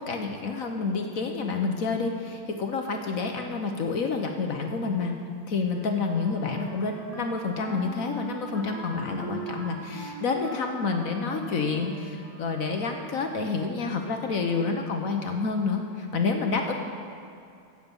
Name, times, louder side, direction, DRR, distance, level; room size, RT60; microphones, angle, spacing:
voice 1, 0.0-5.1 5.5-16.7, left 4 dB, 55° left, 3 dB, 1.1 m, -29 dB
Wind instrument woodwind instrument, 5.7-13.2, right 2 dB, 25° right, 3.5 m, -41 dB
14.5 x 8.3 x 5.4 m, 2.5 s
omnidirectional pair, 2.1 m